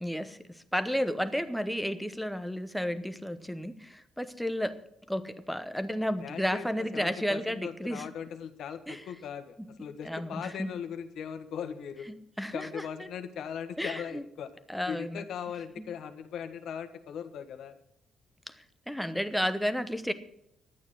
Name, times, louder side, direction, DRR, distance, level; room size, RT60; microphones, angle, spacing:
voice 1, 0.0-4.8 5.1-8.1 8.9-9.0 9.6-9.7 10.0-10.7 12.1-12.9 13.8-14.2 14.7-15.2 15.8-15.9 18.5-18.6 18.9-20.1, equal, ahead, 9 dB, 1.0 m, -32 dB
voice 2, 6.2-12.1 12.5-14.5 14.9-17.7, left 8 dB, 65° left, 8 dB, 1.5 m, -39 dB
11.5 x 9.1 x 7.6 m, 0.76 s
cardioid pair, 135°, 0 cm